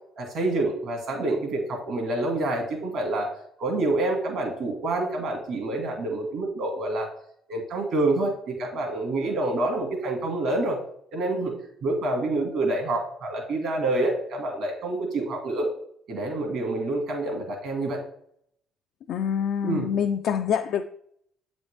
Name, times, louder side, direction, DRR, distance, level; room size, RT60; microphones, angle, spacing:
voice 1, 0.2-7.1 7.5-10.8 11.1-11.5 11.8-15.7 16.1-18.0 19.6-19.9, right 2 dB, 70° right, 1.9 m, -27 dB
voice 2, 19.1-20.8, left 8 dB, 70° left, 0.3 m, -26 dB
8.1 x 4.2 x 3.3 m
supercardioid pair, 70°, 0 cm